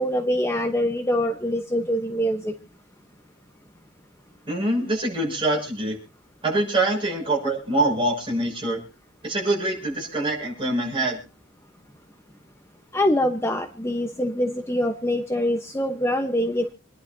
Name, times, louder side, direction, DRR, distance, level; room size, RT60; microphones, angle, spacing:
voice 1, 0.0-2.5 12.9-16.7, equal, 15° left, 4 dB, 0.9 m, -24 dB
voice 2, 4.5-6.0 6.4-8.8 9.2-11.2, right 2 dB, 25° right, -1 dB, 6.6 m, -24 dB
27.0 x 11.0 x 2.7 m, 0.34 s
head